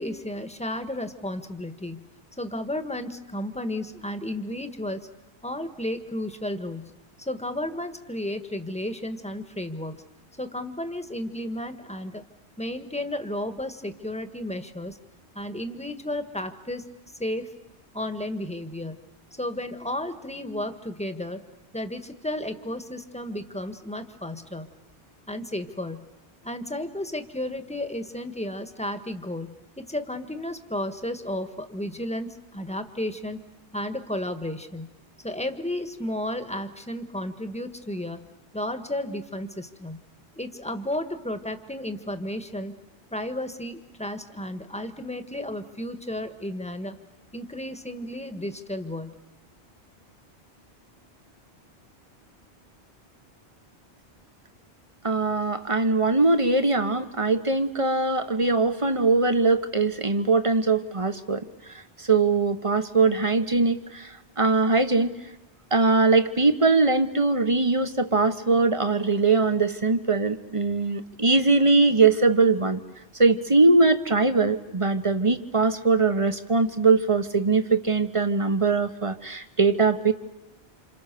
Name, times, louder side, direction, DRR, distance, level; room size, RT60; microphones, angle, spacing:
voice 1, 0.0-2.1 2.4-5.1 5.4-6.9 7.2-9.9 10.4-12.2 12.6-15.0 15.3-16.8 17.2-17.5 17.9-19.0 19.4-21.4 21.7-24.7 25.3-26.1 26.4-33.4 33.7-35.0 35.2-38.3 38.5-40.0 40.3-42.8 43.1-47.0 47.3-49.1, left 1 dB, 5° left, 8 dB, 1.6 m, -33 dB
voice 2, 55.0-61.4 61.7-65.2 65.7-72.8 73.1-80.1, right 3 dB, 30° right, 10 dB, 1.3 m, -21 dB
29.0 x 28.0 x 6.9 m, 1.0 s
omnidirectional pair, 1.1 m